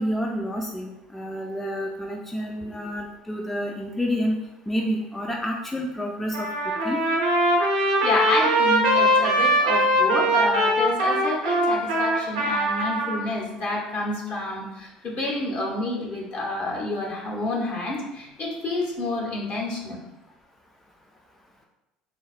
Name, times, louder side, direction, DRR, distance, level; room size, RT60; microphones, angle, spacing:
voice 1, 0.0-4.4 4.7-6.5 6.8-7.0, equal, 5° left, 0 dB, 0.4 m, -29 dB
Trumpet, 6.3-13.2, equal, 80° right, 0.6 m, -21 dB
voice 2, 8.0-20.0, left 2 dB, 50° left, -2 dB, 1.0 m, -29 dB
3.9 x 2.0 x 2.4 m, 0.94 s
hypercardioid pair, 65°, 4 cm